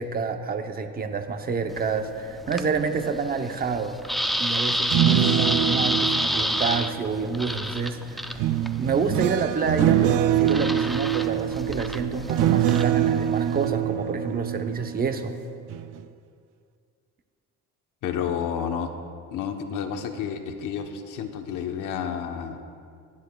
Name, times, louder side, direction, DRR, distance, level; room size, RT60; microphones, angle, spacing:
voice 1, 0.0-8.4 8.8-15.3, right 5 dB, 30° right, 6 dB, 0.8 m, -28 dB
sound 1, 1.7-13.7, equal, ahead, 0.4 m, -30 dB
sound 2, 4.7-7.6 8.4-15.3 15.7-16.0, right 11 dB, 80° right, 0.5 m, -24 dB
voice 2, 18.0-18.9 19.3-22.6, left 7 dB, 75° left, 4 dB, 1.1 m, -30 dB
25.5 x 9.5 x 2.3 m, 2.2 s
cardioid pair, 150°, 31 cm